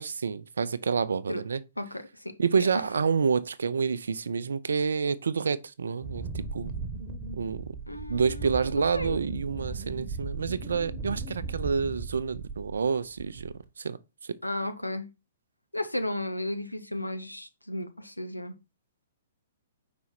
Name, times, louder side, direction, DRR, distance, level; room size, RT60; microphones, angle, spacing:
voice 1, 0.0-1.6 2.4-6.7 7.3-7.6 8.1-14.0, right 5 dB, 65° right, 0.5 m, -28 dB
voice 2, 1.8-2.7 7.9-8.6 8.9-9.2 14.4-15.1 15.7-18.5, left 1 dB, 90° left, 0.8 m, -34 dB
Wind, 6.0-12.9 13.2-13.6, right 4 dB, 25° right, 1.1 m, -37 dB
5.2 x 4.7 x 4.1 m
figure-of-eight pair, 115°, 0 cm